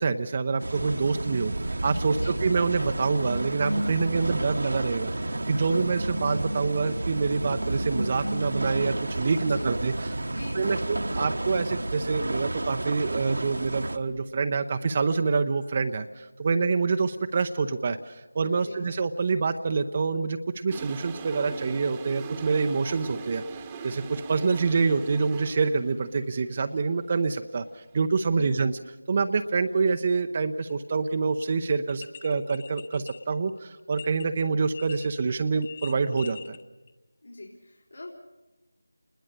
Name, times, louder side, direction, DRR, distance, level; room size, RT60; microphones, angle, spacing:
voice 1, 0.0-10.2 10.5-28.8 29.1-36.6, right 4 dB, 30° right, 7 dB, 0.7 m, -26 dB
sound 1, 0.6-14.0, right 1 dB, 60° right, 1.3 m, -31 dB
voice 2, 2.1-2.4 9.3-9.8 10.2-11.3 18.5-18.8 28.3-28.5 37.2-38.1, left 2 dB, 65° left, -2 dB, 3.9 m, -43 dB
Toilet flush, 20.7-25.9, right 5 dB, 15° right, 1.2 m, -40 dB
sound 2, 30.7-30.9 31.4-31.5 31.9-34.2 34.7-35.2 35.5-36.6 36.9-37.0, left 7 dB, 30° left, 1.2 m, -44 dB
29.0 x 20.5 x 6.7 m, 1.1 s
figure-of-eight pair, 165°, 0 cm